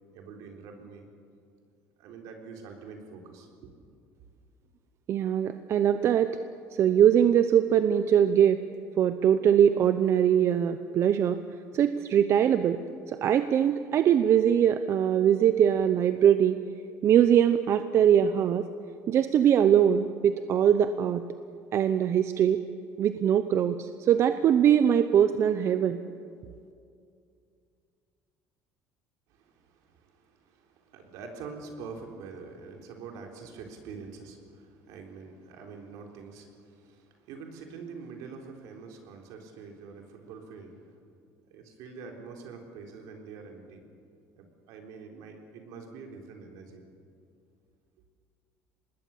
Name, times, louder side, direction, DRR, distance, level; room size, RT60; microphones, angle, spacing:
voice 1, 0.1-1.1 2.0-3.7 29.3-41.0 41.5-43.8 44.4-46.8, right 5 dB, 75° right, 2 dB, 3.7 m, -45 dB
voice 2, 5.1-6.4 6.7-8.6 9.0-11.4 11.7-12.8 13.1-16.6 17.0-18.6 19.1-21.2 21.7-22.6 23.0-26.0, right 9 dB, 50° right, 10 dB, 0.8 m, -22 dB
25.0 x 20.0 x 7.2 m, 2.4 s
cardioid pair, 115°, 6 cm